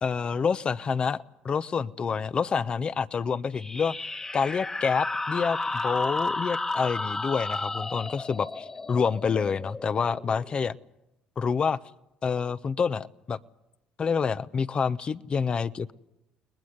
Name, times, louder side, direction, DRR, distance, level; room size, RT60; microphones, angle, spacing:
voice 1, 0.0-3.9 4.3-10.8 11.4-11.8 12.2-13.4 14.0-15.9, left 6 dB, 40° left, 15 dB, 1.0 m, -27 dB
sound 1, 3.5-10.8, left 2 dB, 20° left, 1.6 m, -33 dB
30.0 x 20.5 x 8.1 m, 0.91 s
supercardioid pair, 70°, 3 cm